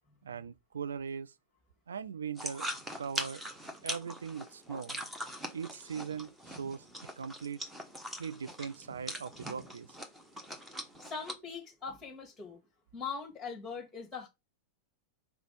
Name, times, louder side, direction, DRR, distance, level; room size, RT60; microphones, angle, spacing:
voice 1, 0.2-1.3 1.9-2.7 3.0-3.4 3.8-5.0 5.5-6.8 7.2-7.6 8.2-9.9, right 6 dB, 70° right, 0.4 m, -40 dB
sound 1, 2.4-11.3, equal, 10° right, 1.3 m, -42 dB
voice 2, 11.0-12.6 12.9-14.3, left 5 dB, 10° left, 1.8 m, -41 dB
4.6 x 4.1 x 5.0 m
figure-of-eight pair, 90°, 0 cm